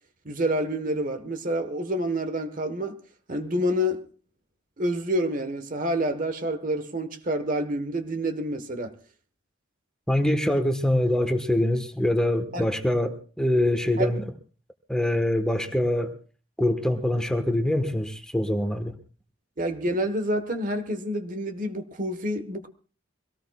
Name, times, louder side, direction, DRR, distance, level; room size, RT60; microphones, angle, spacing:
voice 1, 0.2-3.0 3.3-4.0 4.8-8.9 12.5-12.6 14.0-14.1 19.6-22.7, equal, 40° right, 1.2 m, -28 dB
voice 2, 10.1-14.3 14.9-16.1 16.6-18.9, left 1 dB, 5° left, 1.2 m, -24 dB
24.5 x 18.0 x 2.3 m
head